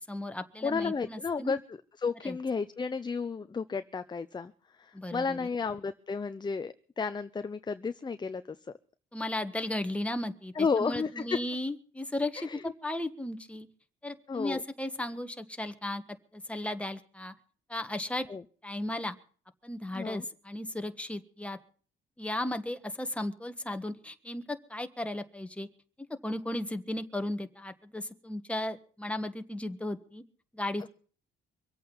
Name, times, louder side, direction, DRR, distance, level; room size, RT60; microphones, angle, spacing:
voice 1, 0.1-1.5 2.2-2.4 4.9-5.5 9.1-13.7 14.0-16.0 16.3-17.3 17.7-18.2 18.6-19.2 19.6-21.6 22.2-25.7 26.2-30.2 30.5-30.9, left 1 dB, 5° left, 7 dB, 1.4 m, -35 dB
voice 2, 0.6-4.5 4.8-8.6 10.6-11.2 12.3-12.6 14.3-14.6 18.3-18.4 19.9-20.2, left 5 dB, 20° left, 11 dB, 0.6 m, -32 dB
24.5 x 8.5 x 5.5 m, 0.43 s
cardioid pair, 90°, 20 cm